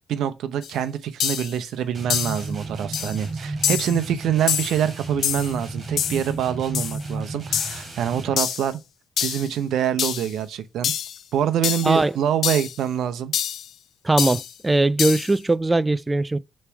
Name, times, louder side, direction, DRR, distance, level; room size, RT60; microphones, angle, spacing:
voice 1, 0.1-8.8 9.2-10.9 11.3-13.3, right 9 dB, 75° right, 0.7 m, -25 dB
sound 1, 0.6-0.7 1.2-1.5 2.1-2.4 2.9-3.2 3.6-4.0 4.5-4.8 5.2-5.5 6.0-6.3 6.7-7.0 7.5-7.9 8.4-8.7 9.2-9.5 10.0-10.3 10.8-11.2 11.6-12.0 12.4-12.8 13.3-13.7 14.2-14.5 15.0-15.3, left 9 dB, 70° left, 0.6 m, -26 dB
sound 2, 1.9-8.4, right 3 dB, 40° right, 2.5 m, -33 dB
voice 2, 14.0-16.4, right 2 dB, 15° right, 0.3 m, -20 dB
6.9 x 3.2 x 4.7 m
cardioid pair, 90°, 0 cm